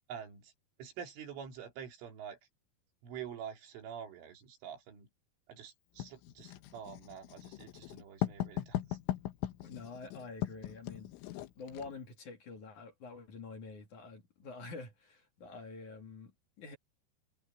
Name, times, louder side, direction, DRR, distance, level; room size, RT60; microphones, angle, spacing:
voice 1, 0.1-0.5 0.8-2.4 3.0-5.1 5.5-8.8, right 8 dB, 85° right, 5.9 m, -46 dB
Writing, 6.0-11.9, left 13 dB, 90° left, 3.8 m, -39 dB
voice 2, 9.6-11.1 11.6-16.8, left 4 dB, 45° left, 3.6 m, -47 dB
omnidirectional pair, 5.4 m